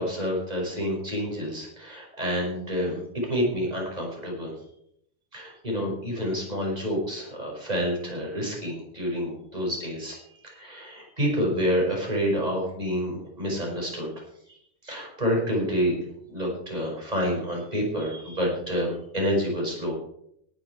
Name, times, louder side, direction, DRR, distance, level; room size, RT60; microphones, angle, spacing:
voice 1, 0.0-3.0 3.3-4.5 5.3-14.1 14.5-14.6 14.8-16.0 16.3-19.9, equal, 35° right, -1 dB, 5.4 m, -28 dB
18.0 x 10.0 x 4.7 m, 0.73 s
omnidirectional pair, 1.3 m